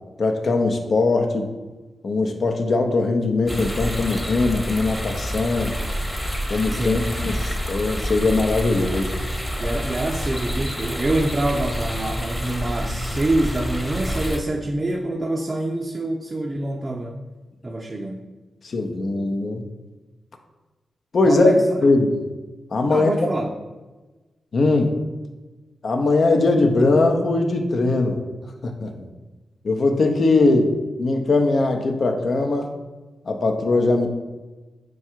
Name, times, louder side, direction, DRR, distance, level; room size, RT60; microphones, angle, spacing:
voice 1, 0.2-1.5 2.0-5.7 6.5-9.1 18.6-19.6 21.1-21.5 21.8-22.3 22.7-23.1 24.5-25.0 25.8-28.2 28.6-28.9 29.6-30.7 31.0-32.7 33.3-34.1, left 3 dB, 65° left, 3 dB, 0.6 m, -20 dB
sound 1, 3.5-14.4, equal, 5° left, 0.9 m, -28 dB
voice 2, 9.6-17.2 17.6-18.2 21.2-21.6 22.9-23.5, right 1 dB, 40° right, 1 dB, 0.4 m, -25 dB
4.6 x 2.3 x 4.4 m, 1.2 s
supercardioid pair, 45°, 0 cm